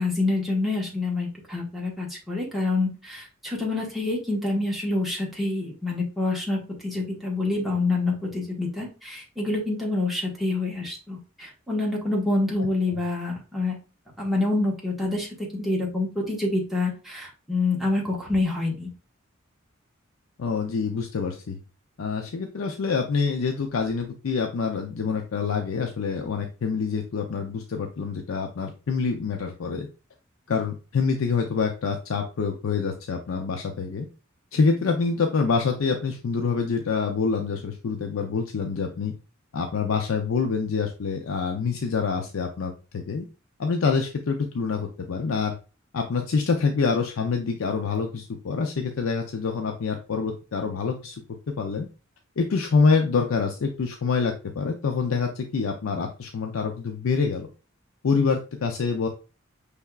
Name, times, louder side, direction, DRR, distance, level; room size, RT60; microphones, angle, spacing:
voice 1, 0.0-13.8 14.2-15.3 15.5-18.9, left 2 dB, ahead, -4 dB, 1.2 m, -27 dB
voice 2, 20.4-21.6 22.0-29.9 30.5-34.1 34.5-39.1 39.5-43.3 43.6-45.6 45.9-51.2 51.5-51.9 52.4-57.5 58.0-59.1, left 5 dB, 70° left, 3 dB, 0.5 m, -26 dB
5.5 x 3.4 x 2.3 m, 0.33 s
head